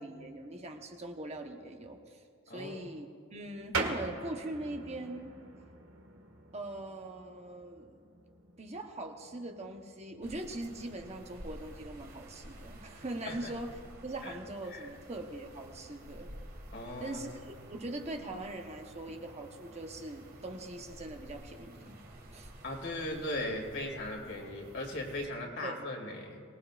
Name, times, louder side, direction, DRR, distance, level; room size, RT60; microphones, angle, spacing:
voice 1, 0.0-3.1 3.3-5.3 6.5-8.0 8.6-13.7 14.0-16.3 17.0-22.0 22.3-22.5 25.6-25.8, right 1 dB, 30° right, 3 dB, 1.1 m, -41 dB
voice 2, 2.5-2.9 13.3-13.5 14.2-14.3 14.7-14.9 16.7-17.2 22.6-26.4, left 1 dB, 60° left, 0 dB, 2.6 m, -38 dB
sound 1, 3.7-13.9, right 3 dB, 80° right, 1.6 m, -43 dB
sound 2, 10.2-25.3, right 1 dB, 50° right, 2.0 m, -51 dB
24.0 x 19.0 x 2.5 m, 2.1 s
head